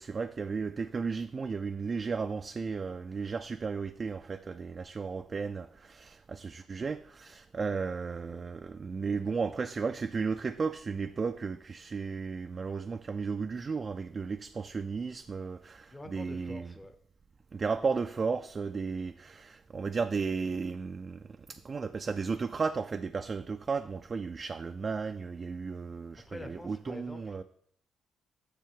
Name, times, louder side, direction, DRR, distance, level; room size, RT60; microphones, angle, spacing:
voice 1, 0.0-16.8 17.5-27.4, right 5 dB, 35° right, 0.3 m, -34 dB
voice 2, 15.9-17.0 26.3-27.4, left 1 dB, 15° left, 0.7 m, -45 dB
7.5 x 6.5 x 3.7 m
cardioid pair, 90°, 0 cm